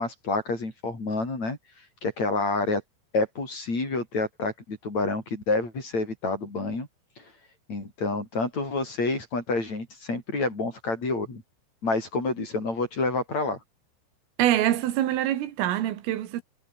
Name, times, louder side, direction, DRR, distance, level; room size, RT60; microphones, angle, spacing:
voice 1, 0.0-1.6 2.0-2.8 3.1-6.9 7.2-7.3 7.7-11.4 11.8-13.6, left 3 dB, 35° left, 8.2 m, -28 dB
voice 2, 14.4-16.4, right 13 dB, 90° right, 4.5 m, -25 dB
omnidirectional pair, 5.7 m